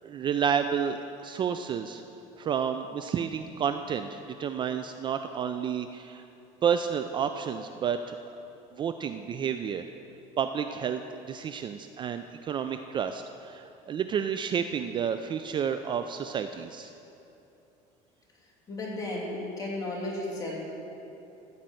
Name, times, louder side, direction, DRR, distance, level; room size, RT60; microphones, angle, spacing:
voice 1, 0.0-2.0 2.4-6.2 6.6-8.2 8.7-9.9 10.4-16.9, right 7 dB, 35° right, 8 dB, 0.4 m, -30 dB
voice 2, 18.7-20.5, left 2 dB, 25° left, -4 dB, 3.0 m, -34 dB
14.5 x 5.4 x 7.7 m, 2.9 s
cardioid pair, 135°, 15 cm